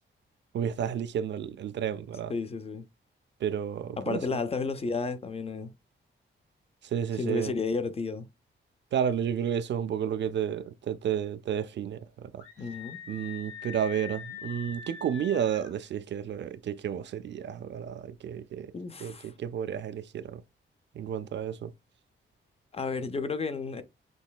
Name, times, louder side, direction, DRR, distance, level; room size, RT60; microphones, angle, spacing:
voice 1, 0.5-2.3 3.4-4.4 6.8-7.5 8.9-12.4 13.1-18.7 19.0-20.4 20.9-21.7, right 9 dB, 60° right, 0.4 m, -31 dB
voice 2, 2.3-2.9 4.0-5.7 7.2-8.3 12.6-13.0 18.7-19.3 22.7-23.8, left 4 dB, 30° left, 0.5 m, -32 dB
Screaming, 12.4-15.7, left 7 dB, 90° left, 1.9 m, -43 dB
6.1 x 3.1 x 2.3 m
wide cardioid pair, 175°, 21 cm